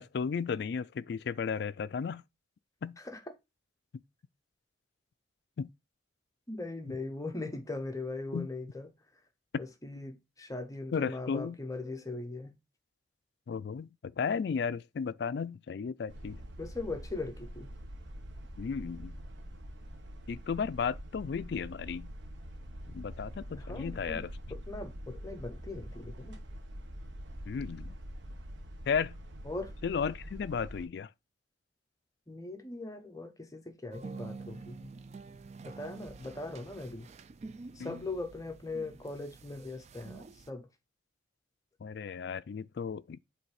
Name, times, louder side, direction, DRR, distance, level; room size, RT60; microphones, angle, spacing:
voice 1, 0.0-2.2 2.8-3.0 5.6-5.7 8.3-8.5 9.5-9.6 10.9-11.6 13.5-16.4 18.6-19.1 20.3-22.1 22.9-24.3 27.5-28.0 28.9-29.2 29.8-31.1 37.8-38.0 41.8-43.2, left 6 dB, 60° left, 0.3 m, -34 dB
voice 2, 6.5-8.9 9.6-12.5 16.6-17.7 23.6-26.4 29.4-29.7 32.3-34.9 35.6-37.1 37.7-40.7, left 2 dB, 20° left, 0.8 m, -40 dB
sound 1, 16.1-30.9, equal, 75° right, 1.0 m, -45 dB
sound 2, 33.9-40.5, right 4 dB, 35° right, 0.3 m, -48 dB
7.8 x 3.2 x 4.7 m
head